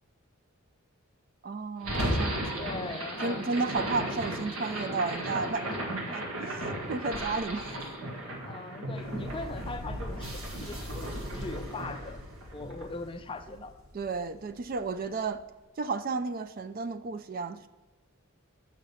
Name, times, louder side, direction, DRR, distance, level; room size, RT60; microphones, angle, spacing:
voice 1, 1.4-2.7 3.2-5.7 6.1-7.7 13.9-15.4 15.8-17.7, right 4 dB, 45° right, 11 dB, 0.4 m, -33 dB
sound 1, 1.8-14.0, right 1 dB, 90° right, 1.8 m, -35 dB
voice 2, 2.6-3.4 8.1-12.2 12.5-13.7, left 3 dB, 25° left, 8 dB, 0.5 m, -40 dB
7.5 x 5.9 x 5.6 m, 1.1 s
head